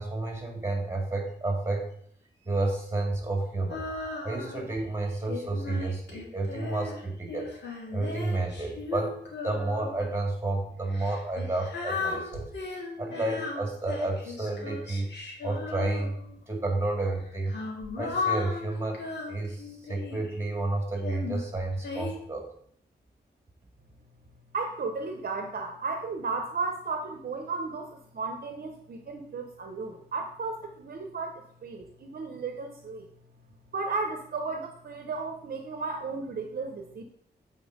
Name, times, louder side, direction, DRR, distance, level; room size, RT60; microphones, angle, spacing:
voice 1, 0.0-1.9 2.5-3.9 4.2-7.5 7.9-9.2 9.4-12.5 13.0-15.1 15.4-16.2 16.5-17.6 18.0-19.0 19.3-22.5, right 2 dB, 15° right, 1 dB, 1.9 m, -31 dB
Female singing, 3.7-4.7 5.3-10.1 10.9-16.4 17.2-20.3 21.0-22.1, left 4 dB, 85° left, 1.8 m, -36 dB
voice 2, 24.5-33.1 33.7-37.0, right 4 dB, 55° right, 5 dB, 0.8 m, -34 dB
7.0 x 4.3 x 5.0 m, 0.65 s
wide cardioid pair, 145°, 18 cm